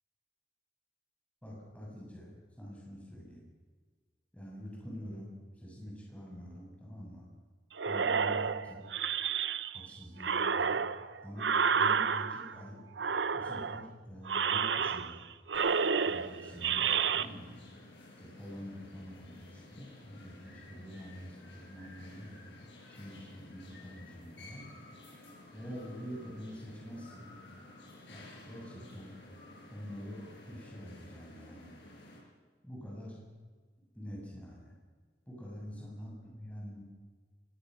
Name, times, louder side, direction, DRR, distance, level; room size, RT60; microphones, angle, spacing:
voice 1, 1.4-2.3 2.6-3.4 4.3-7.2 7.8-8.8 9.7-10.8 11.2-12.8 13.3-15.2 16.0-17.6 18.2-22.3 22.9-24.6 25.5-27.4 28.1-29.1 29.7-31.8 32.6-33.2 33.9-34.7 35.3-36.8, equal, 10° left, -3 dB, 7.3 m, -46 dB
sound 1, 7.8-9.9 10.2-12.6 13.0-13.9 14.3-15.2 15.5-17.3, right 6 dB, 85° right, 0.8 m, -30 dB
sound 2, 15.5-32.2, left 2 dB, 85° left, 7.1 m, -53 dB
23.5 x 20.5 x 6.5 m, 1.5 s
head